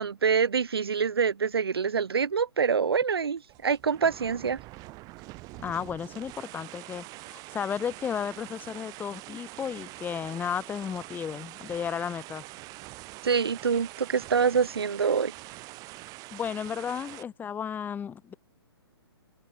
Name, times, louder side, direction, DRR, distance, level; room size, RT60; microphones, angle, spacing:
voice 1, 0.0-4.6 13.2-15.3, right 6 dB, 65° right, 3.9 m, -26 dB
sound 1, 3.4-17.2, right 22 dB, 25° right, 5.5 m, -45 dB
voice 2, 5.6-12.4 16.3-18.3, left 7 dB, 15° left, 4.7 m, -33 dB
figure-of-eight pair, 125°, 14 cm